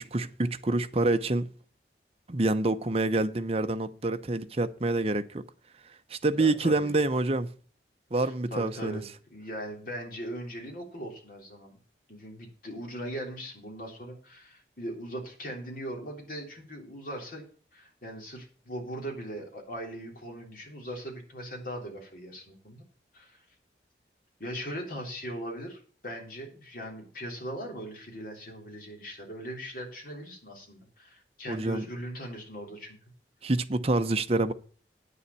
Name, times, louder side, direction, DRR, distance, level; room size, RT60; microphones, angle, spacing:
voice 1, 0.0-1.5 2.3-5.4 6.1-7.5 8.1-9.0 31.5-31.9 33.4-34.5, right 2 dB, 35° right, 0.7 m, -27 dB
voice 2, 6.3-6.9 8.2-11.8 12.1-17.4 17.7-22.8 23.1-23.4 24.4-33.0, equal, 50° left, 3.5 m, -40 dB
9.4 x 7.0 x 7.0 m
head